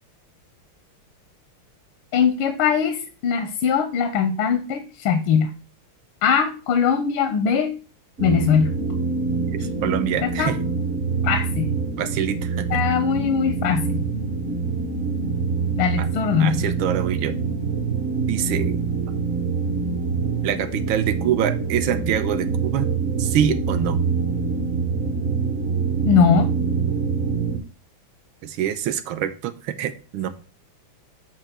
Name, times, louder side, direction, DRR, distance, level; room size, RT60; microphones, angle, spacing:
voice 1, 2.1-5.5 6.2-7.7 8.2-8.7 10.2-10.5 11.2-11.7 12.7-14.0 15.8-16.6 26.1-26.5, left 7 dB, 80° left, 8 dB, 1.6 m, -21 dB
sound 1, 8.2-27.6, right 4 dB, 45° right, 0.9 m, -25 dB
voice 2, 9.5-10.6 12.0-12.8 16.0-16.1 16.4-17.4 18.3-18.8 20.4-22.9 23.2-24.0 28.4-30.3, right 10 dB, 75° right, 9 dB, 1.4 m, -25 dB
7.7 x 2.7 x 5.8 m, 0.36 s
omnidirectional pair, 2.3 m